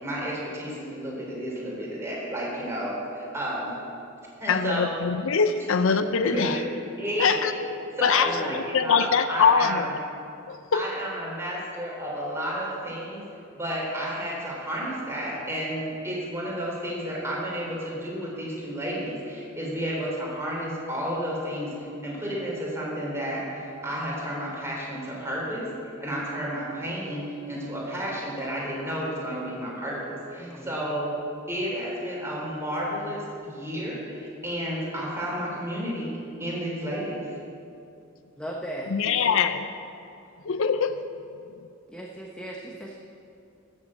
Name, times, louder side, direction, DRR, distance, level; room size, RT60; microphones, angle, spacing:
voice 1, 0.0-3.7 4.4-4.9 6.2-6.6 7.0-7.5 8.0-9.9 10.7-13.2 13.5-25.6 26.0-31.1 31.5-36.1 36.4-37.2, equal, 15° right, -5 dB, 3.7 m, -31 dB
voice 2, 4.5-6.6 7.2-7.5 8.0-9.9 10.5-10.9 38.9-39.7 40.4-41.0, left 6 dB, 70° left, 10 dB, 0.5 m, -23 dB
voice 3, 8.2-8.6 30.4-30.9 38.4-39.4 41.9-43.0, right 1 dB, 5° left, -1 dB, 0.9 m, -37 dB
14.0 x 7.3 x 7.8 m, 2.6 s
head